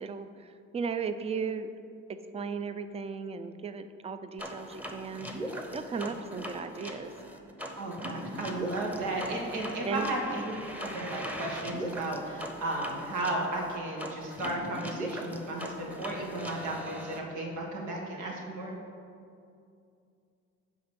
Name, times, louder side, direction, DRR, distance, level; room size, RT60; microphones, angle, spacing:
voice 1, 0.0-1.7 2.1-7.1 9.8-10.1, right 5 dB, 20° right, 10 dB, 0.4 m, -36 dB
sound 1, 4.4-17.2, equal, 5° right, 0.9 m, -40 dB
voice 2, 7.7-18.8, right 2 dB, 85° right, -1 dB, 1.3 m, -34 dB
10.0 x 3.4 x 6.9 m, 2.5 s
cardioid pair, 90°, 30 cm